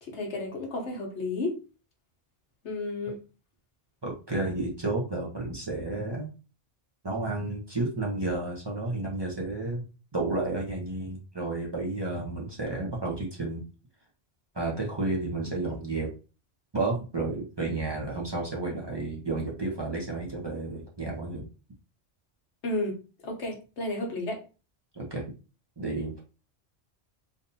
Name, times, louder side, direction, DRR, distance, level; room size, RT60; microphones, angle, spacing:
voice 1, 0.0-1.6 2.6-3.2 22.6-24.4, left 2 dB, 85° left, 1 dB, 1.3 m, -32 dB
voice 2, 4.0-6.3 7.0-9.8 10.1-13.6 14.5-16.1 16.7-21.4 24.9-25.2 25.8-26.2, right 2 dB, 25° right, -3 dB, 0.9 m, -31 dB
3.6 x 2.7 x 2.7 m, 0.32 s
omnidirectional pair, 1.1 m